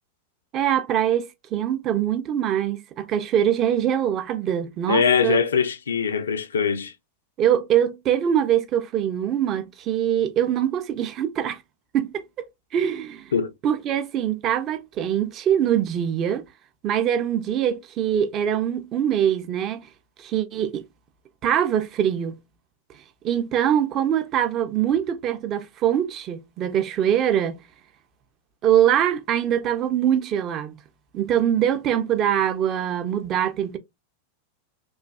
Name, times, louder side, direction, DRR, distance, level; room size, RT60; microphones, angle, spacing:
voice 1, 0.5-5.4 7.4-11.6 11.9-12.5 12.7-13.3 13.6-16.4 16.8-19.8 20.2-20.8 21.4-22.4 23.2-27.6 28.6-30.7 31.1-33.8, right 10 dB, 35° right, 0.4 m, -23 dB
voice 2, 4.9-6.9 13.3-13.5, left 6 dB, 70° left, 0.3 m, -22 dB
3.1 x 2.2 x 2.2 m
figure-of-eight pair, 90°, 0 cm